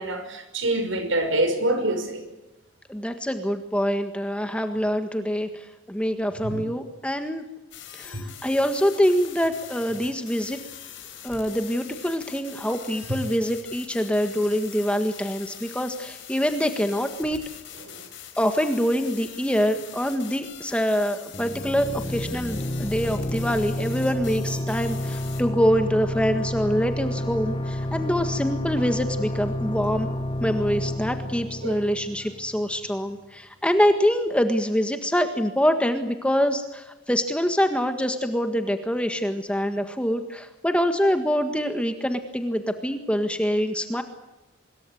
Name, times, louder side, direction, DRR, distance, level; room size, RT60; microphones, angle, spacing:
voice 1, 0.0-2.2 6.4-6.6 8.1-8.2 17.9-18.1 28.8-28.9 31.6-31.8, right 1 dB, 75° right, 8 dB, 5.8 m, -26 dB
voice 2, 2.9-7.4 7.9-10.6 11.2-17.4 18.4-30.1 30.4-44.0, equal, 5° left, 6 dB, 1.6 m, -25 dB
sound 1, 7.7-25.4, left 9 dB, 65° left, 5.1 m, -43 dB
sound 2, 21.3-32.7, left 1 dB, 25° left, 1.4 m, -30 dB
25.0 x 22.5 x 7.8 m, 1.0 s
head